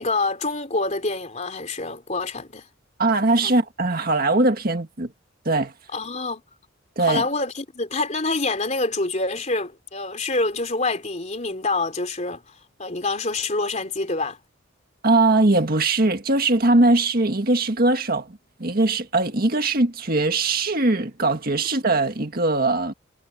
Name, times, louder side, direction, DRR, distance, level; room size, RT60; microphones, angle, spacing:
voice 1, 0.0-2.7 3.4-3.5 5.9-6.4 7.0-14.4, left 3 dB, 35° left, 3.4 m, -26 dB
voice 2, 3.0-5.1 5.5-5.7 7.0-7.2 15.0-22.9, right 2 dB, 45° right, 1.8 m, -21 dB
head